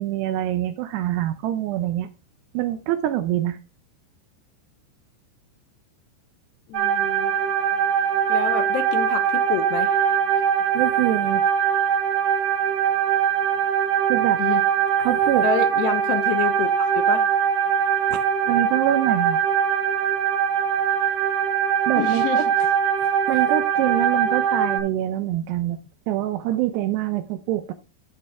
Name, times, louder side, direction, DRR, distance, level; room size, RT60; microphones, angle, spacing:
voice 1, 0.0-2.1 2.5-3.6 10.7-11.4 14.1-14.4 15.0-15.5 18.1-19.4 21.9-22.4 23.3-25.8 26.1-27.7, right 13 dB, 80° right, 2.6 m, -25 dB
voice 2, 6.7-7.3 8.3-10.4 14.4-14.6 15.4-17.2 22.0-22.4 23.3-23.4, left 9 dB, 80° left, 2.7 m, -28 dB
sound 1, 6.7-24.8, right 8 dB, 50° right, 3.6 m, -22 dB
14.0 x 5.3 x 3.5 m
omnidirectional pair, 5.3 m